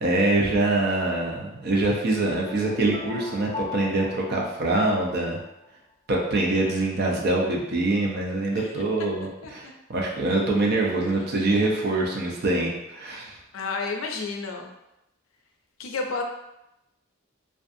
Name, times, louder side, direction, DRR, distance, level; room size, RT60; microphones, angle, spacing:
voice 1, 0.0-5.4 6.1-13.4, right 2 dB, 55° right, -1 dB, 0.5 m, -24 dB
sound 1, 2.4-5.5, left 3 dB, 20° left, 0.3 m, -38 dB
voice 2, 13.5-14.7 15.8-16.2, left 4 dB, 90° left, 3 dB, 0.4 m, -31 dB
2.5 x 2.3 x 2.5 m, 0.88 s
head